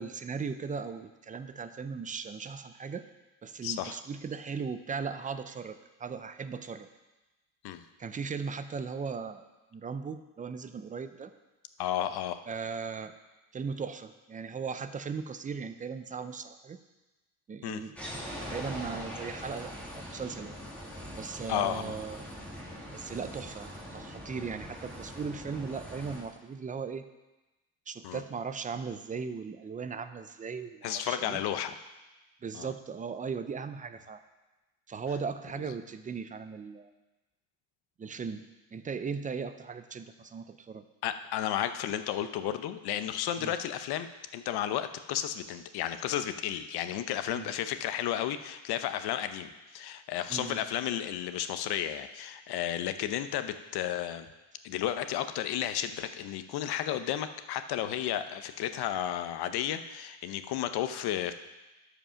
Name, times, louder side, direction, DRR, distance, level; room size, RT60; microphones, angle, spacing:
voice 1, 0.0-3.1 3.4-6.9 8.0-9.4 9.7-11.3 12.5-13.1 13.5-16.8 17.5-18.0 18.5-20.6 21.2-22.3 22.9-27.1 27.9-31.4 32.4-34.2 34.9-36.9 38.0-38.5 38.7-40.9 43.4-43.5 47.3-47.5 50.3-50.6, right 5 dB, 20° right, 11 dB, 0.4 m, -38 dB
voice 2, 3.6-4.0 7.6-7.8 11.8-12.4 17.6-17.8 21.5-21.9 28.0-28.2 30.8-31.7 32.5-32.7 41.0-44.1 44.3-54.3 54.6-61.3, left 11 dB, 70° left, 10 dB, 0.8 m, -33 dB
sound 1, 18.0-26.2, equal, 5° left, 2.1 m, -42 dB
12.5 x 5.1 x 5.7 m, 1.1 s
cardioid pair, 135°, 40 cm